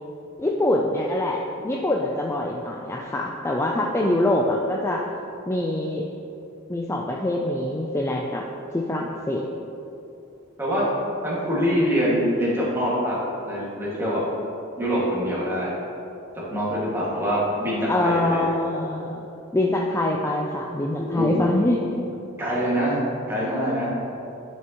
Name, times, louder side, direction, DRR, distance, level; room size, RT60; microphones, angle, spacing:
voice 1, 0.4-5.0 5.5-6.1 6.7-8.4 8.7-9.5 17.9-21.8, left 1 dB, 15° left, -1 dB, 0.4 m, -24 dB
voice 2, 11.2-13.2 13.4-14.2 14.8-15.7 16.5-18.4 21.0-21.4 22.4-23.9, equal, 10° right, -7 dB, 1.9 m, -24 dB
11.0 x 6.2 x 3.0 m, 2.8 s
head